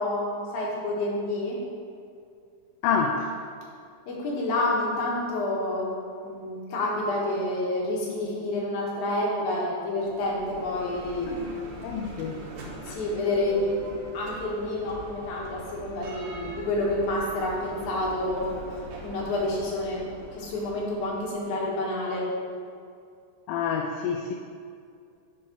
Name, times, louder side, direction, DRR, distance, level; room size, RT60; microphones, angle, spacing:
voice 1, 0.0-1.6 4.1-5.9 6.2-11.3 12.8-13.7 14.1-18.5 19.0-20.1 20.3-22.3, left 1 dB, 65° left, -4 dB, 2.6 m, -28 dB
voice 2, 2.8-3.3 11.2-12.4 12.9-13.0 23.5-24.3, left 6 dB, 80° left, 2 dB, 2.1 m, -28 dB
Bell, 9.9-21.7, right 1 dB, 70° right, 1.8 m, -42 dB
6.2 x 4.6 x 5.8 m, 2.3 s
omnidirectional pair, 4.2 m